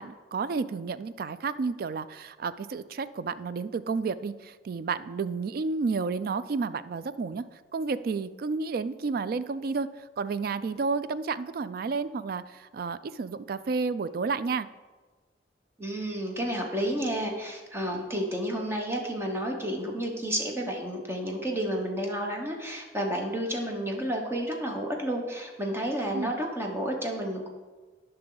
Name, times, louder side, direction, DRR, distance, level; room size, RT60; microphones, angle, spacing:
voice 1, 0.0-14.7 26.1-26.3, right 4 dB, 55° right, 15 dB, 0.3 m, -31 dB
voice 2, 15.8-27.5, right 1 dB, 15° right, 1 dB, 1.1 m, -31 dB
11.5 x 5.6 x 3.9 m, 1.3 s
head